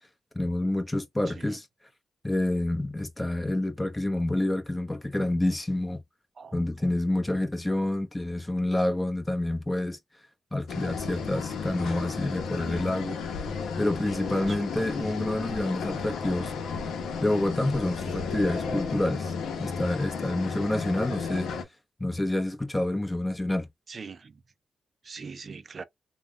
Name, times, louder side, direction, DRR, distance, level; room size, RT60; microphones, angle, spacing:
voice 1, 0.3-1.6 2.2-6.0 6.5-10.0 10.5-13.2 13.8-16.5 17.2-19.3 19.6-21.5 22.0-23.7, left 1 dB, 15° left, 0.8 m, -28 dB
voice 2, 1.3-1.6 6.4-6.9 14.3-14.9 23.9-24.4 25.0-25.8, right 5 dB, 50° right, 0.3 m, -42 dB
sound 1, 10.7-21.6, left 5 dB, 85° left, 0.7 m, -33 dB
3.4 x 2.2 x 2.2 m
cardioid pair, 65°, 0 cm